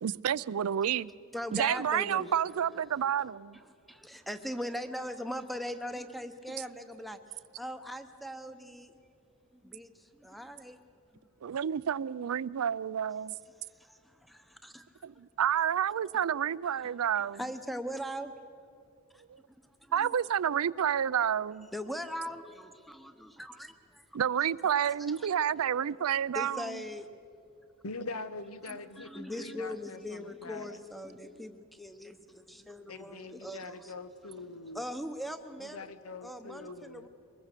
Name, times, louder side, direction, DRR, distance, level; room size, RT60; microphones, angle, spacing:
voice 1, 0.0-1.0 1.5-3.6 11.4-13.3 15.0-17.4 19.3-19.4 19.9-21.7 24.1-26.8, right 9 dB, 90° right, 0.4 m, -29 dB
voice 2, 1.3-2.3 3.9-7.2 7.6-8.9 9.5-10.8 13.8-15.0 17.3-18.4 19.1-19.2 19.8-20.1 21.7-24.0 24.9-25.3 26.3-27.1 28.7-33.9 34.7-35.9 36.2-37.1, equal, ahead, 0.9 m, -40 dB
voice 3, 27.8-30.8 32.9-34.9 35.6-37.1, left 3 dB, 85° left, 1.1 m, -43 dB
24.0 x 21.0 x 6.7 m
head